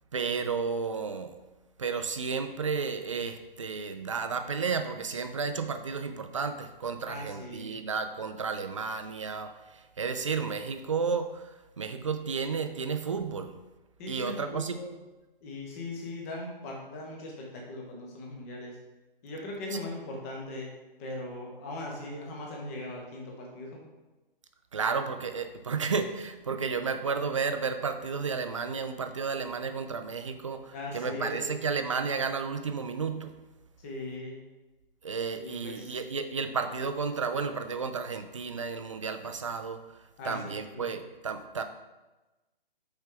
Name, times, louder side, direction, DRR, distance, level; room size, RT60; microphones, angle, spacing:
voice 1, 0.1-1.4 1.8-13.6 14.1-14.8 24.7-33.3 35.0-39.8 40.2-41.6, right 5 dB, 35° right, 8 dB, 0.4 m, -32 dB
voice 2, 7.1-7.7 14.0-14.9 15.4-18.8 19.2-20.7 21.0-23.8 30.7-31.5 33.8-34.4 35.4-36.0 40.2-40.9, left 2 dB, 15° left, -1 dB, 0.7 m, -39 dB
5.8 x 4.4 x 3.7 m, 1.1 s
hypercardioid pair, 155°, 29 cm